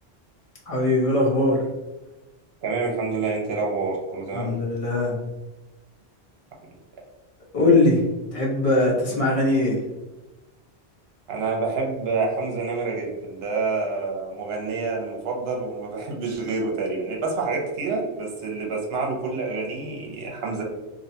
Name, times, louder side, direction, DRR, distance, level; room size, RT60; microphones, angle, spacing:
voice 1, 0.7-1.6 4.3-5.2 7.5-8.0 8.3-9.8, left 2 dB, 35° left, -4 dB, 0.7 m, -21 dB
voice 2, 2.6-4.6 11.3-20.6, right 3 dB, 70° right, 0 dB, 0.8 m, -27 dB
2.5 x 2.1 x 2.7 m, 1.1 s
omnidirectional pair, 1.1 m